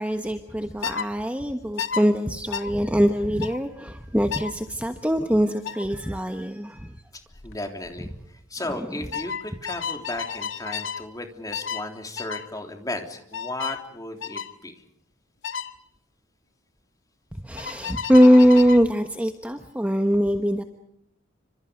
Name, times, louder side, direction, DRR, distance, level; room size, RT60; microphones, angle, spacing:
voice 1, 0.0-6.9 8.7-8.9 17.4-20.6, equal, 5° right, 5 dB, 1.2 m, -21 dB
sound 1, 0.8-1.1 1.8-2.0 2.5-2.7 3.4-3.6 4.3-4.5 5.6-5.9 7.3-7.6 7.8-8.2 9.1-11.0 11.5-11.9 12.2-12.5 13.3-13.8 14.2-14.5 15.4-15.7 17.6-18.8, left 7 dB, 90° left, 1.7 m, -32 dB
voice 2, 7.4-14.7, left 2 dB, 20° left, 4 dB, 3.4 m, -35 dB
29.0 x 26.5 x 5.2 m, 0.77 s
head